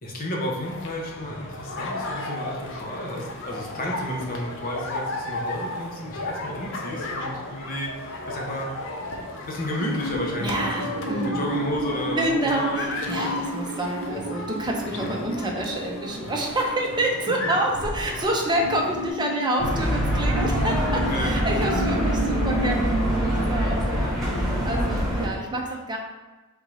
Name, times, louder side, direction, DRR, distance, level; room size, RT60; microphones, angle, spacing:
voice 1, 0.0-8.7 9.2-10.7 11.1-13.3 14.9-15.0 21.1-21.3 24.0-24.1, left 1 dB, 40° left, -2 dB, 0.9 m, -32 dB
sound 1, 0.6-19.1, left 2 dB, 60° left, 0.6 m, -34 dB
sound 2, 9.8-22.8, right 1 dB, 80° right, 0.4 m, -33 dB
voice 2, 10.4-11.4 12.2-26.0, right 1 dB, 20° right, 0 dB, 0.6 m, -28 dB
sound 3, 19.6-25.3, equal, ahead, 1.1 m, -24 dB
3.7 x 2.7 x 4.7 m, 1.2 s
head